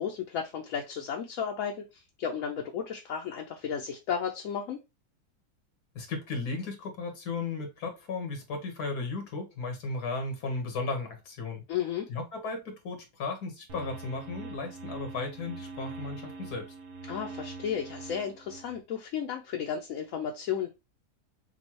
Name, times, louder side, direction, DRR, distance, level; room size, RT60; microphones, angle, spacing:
voice 1, 0.0-4.8 11.7-12.1 17.1-20.7, left 8 dB, 65° left, 1 dB, 1.0 m, -33 dB
voice 2, 6.0-11.6 12.1-16.7, left 3 dB, 90° left, 4 dB, 1.9 m, -35 dB
sound 1, 13.7-18.8, right 3 dB, 80° right, 1.3 m, -43 dB
6.0 x 2.4 x 2.9 m, 0.24 s
omnidirectional pair, 1.6 m